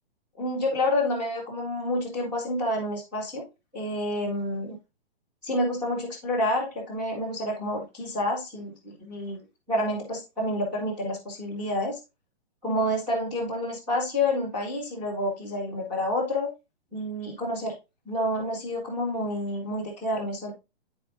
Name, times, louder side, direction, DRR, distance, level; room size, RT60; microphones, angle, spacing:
voice 1, 0.4-3.4 3.7-4.8 5.4-9.4 9.7-12.0 12.6-16.5 16.9-17.7 18.0-20.5, left 1 dB, 5° right, -9 dB, 0.4 m, -29 dB
10.0 x 4.2 x 2.5 m, 0.26 s
hypercardioid pair, 170°, 33 cm